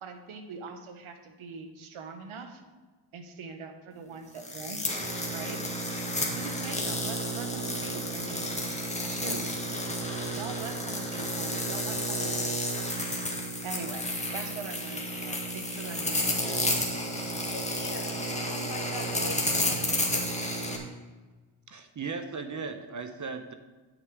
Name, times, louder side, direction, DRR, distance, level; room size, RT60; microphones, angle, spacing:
voice 1, 0.0-2.6 3.1-5.0 5.3-5.6 6.3-8.5 9.1-9.5 10.0-12.6 13.0-13.1 13.6-14.1 14.3-16.6, right 5 dB, 75° right, 6 dB, 1.3 m, -42 dB
sound 1, 4.4-20.8, equal, 15° left, 1.9 m, -31 dB
voice 2, 17.5-20.5, left 3 dB, 40° left, 4 dB, 1.4 m, -42 dB
voice 3, 21.7-23.5, right 4 dB, 35° right, 8 dB, 0.8 m, -37 dB
9.6 x 6.5 x 4.8 m, 1.3 s
cardioid pair, 85°, 50 cm